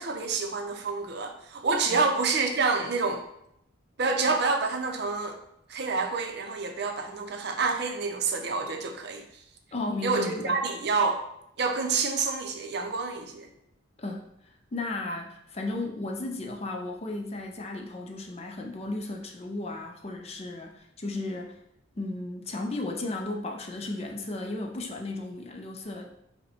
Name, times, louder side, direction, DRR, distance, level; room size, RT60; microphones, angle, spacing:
voice 1, 0.0-3.2 4.0-5.4 5.7-9.4 10.0-11.2 11.6-13.5, right 4 dB, 55° right, 4 dB, 0.5 m, -28 dB
voice 2, 9.7-10.6 14.0-21.6 22.0-26.1, left 2 dB, 30° left, 2 dB, 0.4 m, -35 dB
5.2 x 2.2 x 4.1 m, 0.76 s
head